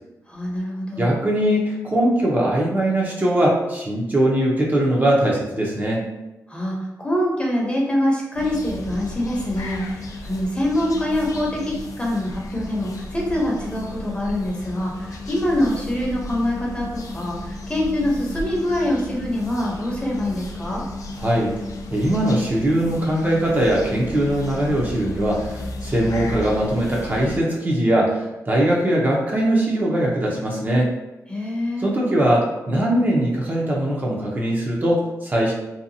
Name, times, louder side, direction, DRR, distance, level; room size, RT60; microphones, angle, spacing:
voice 1, 0.3-1.1 6.5-20.8 31.3-31.9, left 1 dB, 15° left, -2 dB, 0.7 m, -24 dB
voice 2, 1.0-6.0 21.2-21.5 21.9-30.9 31.8-35.5, right 1 dB, 30° right, -3 dB, 0.6 m, -21 dB
sound 1, 8.4-27.4, left 2 dB, 60° left, 0.4 m, -34 dB
2.7 x 2.2 x 2.6 m, 0.97 s
cardioid pair, 95°, 6 cm